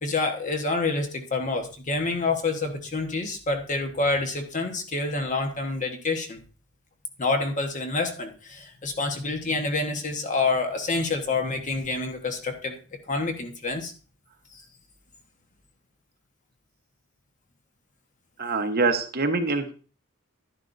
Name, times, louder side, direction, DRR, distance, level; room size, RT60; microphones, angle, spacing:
voice 1, 0.0-6.4 7.2-12.8 13.1-13.9 14.5-14.6, left 3 dB, 35° left, 5 dB, 1.3 m, -27 dB
voice 2, 18.4-19.7, right 3 dB, 45° right, 6 dB, 1.1 m, -24 dB
11.0 x 11.0 x 2.6 m, 0.37 s
head